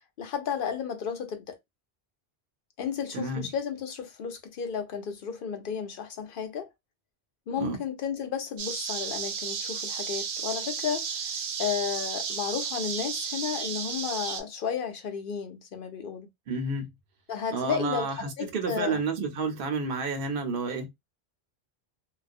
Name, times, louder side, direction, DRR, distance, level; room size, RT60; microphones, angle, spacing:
voice 1, 0.2-1.6 2.8-6.7 7.5-16.3 17.3-19.0, left 7 dB, 60° left, 0.7 m, -33 dB
voice 2, 3.1-3.5 7.6-7.8 16.5-16.9 17.5-20.9, right 4 dB, 60° right, 0.8 m, -30 dB
sound 1, 8.6-14.4, right 6 dB, 90° right, 0.9 m, -33 dB
2.3 x 2.2 x 2.5 m
omnidirectional pair, 1.1 m